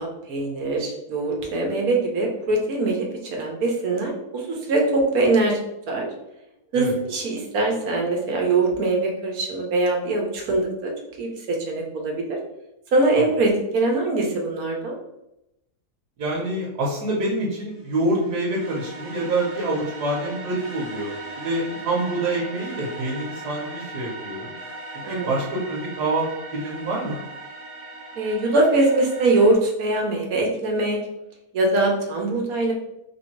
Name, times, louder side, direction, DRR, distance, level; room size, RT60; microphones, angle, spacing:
voice 1, 0.0-3.1 3.3-5.6 5.9-6.1 6.7-10.9 11.2-12.4 12.9-14.9 25.0-25.3 28.2-31.0 31.5-32.7, right 2 dB, 65° right, 1 dB, 1.3 m, -22 dB
voice 2, 16.2-21.1 21.4-24.5 25.1-26.3 26.5-27.2, right 2 dB, 85° right, -3 dB, 1.5 m, -26 dB
sound 1, 17.7-29.5, right 2 dB, 20° right, 1.2 m, -38 dB
3.6 x 2.7 x 4.4 m, 0.87 s
omnidirectional pair, 1.7 m